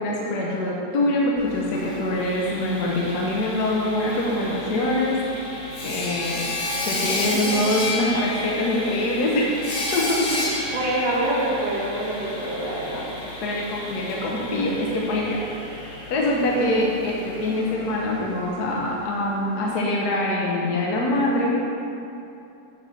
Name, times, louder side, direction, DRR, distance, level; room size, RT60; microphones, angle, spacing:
voice 1, 0.0-5.2 5.8-6.5 6.8-9.6 9.9-10.5 13.4-15.4 16.1-21.6, left 1 dB, 70° left, -2 dB, 1.3 m, -24 dB
Sawing, 1.4-19.2, left 2 dB, 45° left, 1.6 m, -32 dB
voice 2, 10.7-13.1 16.6-16.8, right 1 dB, 80° right, -6 dB, 2.2 m, -26 dB
8.1 x 3.8 x 5.5 m, 2.8 s
omnidirectional pair, 1.9 m